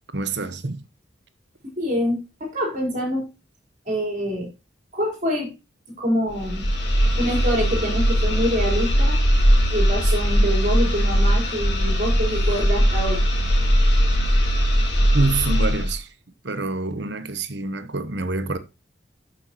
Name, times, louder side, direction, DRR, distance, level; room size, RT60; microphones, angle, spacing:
voice 1, 0.1-0.8 15.1-16.1 16.4-18.6, right 3 dB, 65° right, 1.0 m, -26 dB
voice 2, 1.6-3.3 3.9-4.5 4.9-5.5 6.0-6.7 7.2-9.2 9.7-13.2, equal, 40° right, 4.2 m, -25 dB
sound 1, 6.3-16.0, equal, 65° left, 2.6 m, -20 dB
11.5 x 6.3 x 3.0 m
head